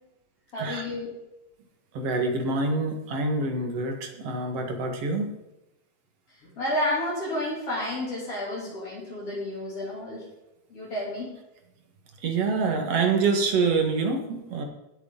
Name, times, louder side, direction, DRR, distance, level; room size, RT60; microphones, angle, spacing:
voice 1, 0.5-1.1 6.4-10.2 10.7-11.3, left 1 dB, 50° left, -6 dB, 4.2 m, -31 dB
voice 2, 1.9-5.3 12.2-14.6, right 4 dB, 60° right, 3 dB, 2.6 m, -26 dB
17.5 x 8.1 x 3.9 m, 0.95 s
omnidirectional pair, 3.3 m